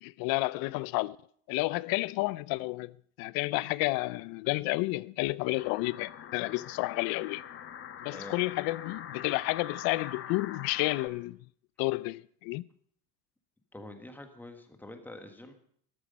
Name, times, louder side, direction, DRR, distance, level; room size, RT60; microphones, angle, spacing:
voice 1, 0.0-1.2 1.5-7.4 8.0-11.4 11.8-12.7, left 21 dB, 70° left, 0.5 m, -31 dB
sound 1, 5.5-11.1, left 9 dB, 35° left, 1.1 m, -43 dB
voice 2, 13.7-15.5, left 1 dB, 5° left, 1.4 m, -46 dB
13.0 x 13.0 x 5.3 m
cardioid pair, 160°, 37 cm